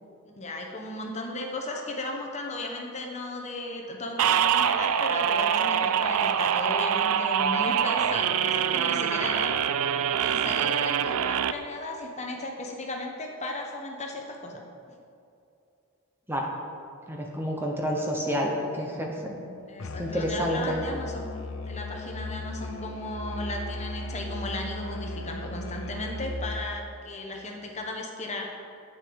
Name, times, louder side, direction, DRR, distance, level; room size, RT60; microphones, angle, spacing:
voice 1, 0.4-9.7 10.2-14.6 19.7-21.3 21.6-28.5, left 2 dB, 30° left, 1 dB, 1.0 m, -36 dB
sound 1, 4.2-11.5, right 8 dB, 75° right, 0.4 m, -25 dB
voice 2, 17.1-19.4 20.0-20.8, equal, 10° right, 0 dB, 0.9 m, -29 dB
Musical instrument, 19.8-26.8, left 1 dB, 60° left, 0.6 m, -36 dB
9.8 x 8.9 x 4.7 m, 2.6 s
head